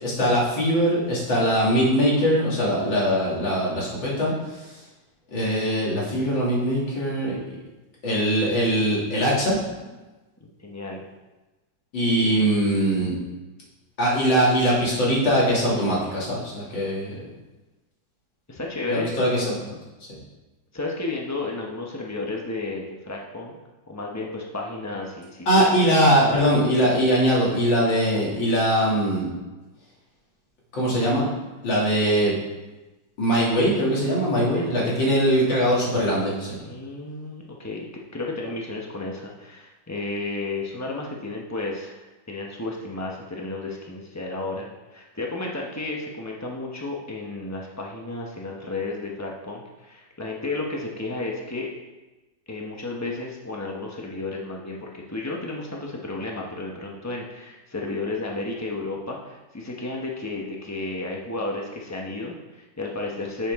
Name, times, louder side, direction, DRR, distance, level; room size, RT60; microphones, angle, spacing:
voice 1, 0.0-4.8 5.3-7.4 8.0-9.6 11.9-13.1 14.0-17.2 18.9-19.7 25.5-29.3 30.7-31.3 31.6-32.4 33.2-36.6, equal, 75° left, -5 dB, 3.3 m, -21 dB
voice 2, 10.4-11.0 12.2-12.3 18.5-19.1 20.7-23.5 23.9-25.7 34.5-35.2 36.6-37.8 38.1-51.7 52.5-63.5, left 2 dB, 25° left, -1 dB, 0.3 m, -32 dB
10.5 x 7.1 x 3.6 m, 1.1 s
omnidirectional pair, 2.1 m